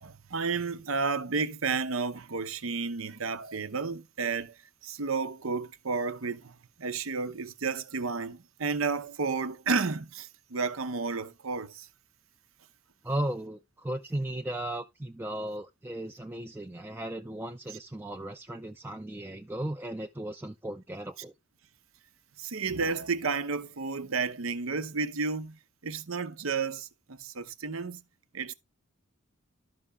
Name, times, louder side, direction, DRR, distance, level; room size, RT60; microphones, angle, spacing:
voice 1, 0.0-4.5 4.8-11.9 17.7-17.8 22.4-28.0 28.3-28.5, right 4 dB, 75° right, 0.8 m, -32 dB
voice 2, 13.0-21.3, right 1 dB, 10° right, 0.4 m, -36 dB
12.5 x 5.7 x 3.5 m
head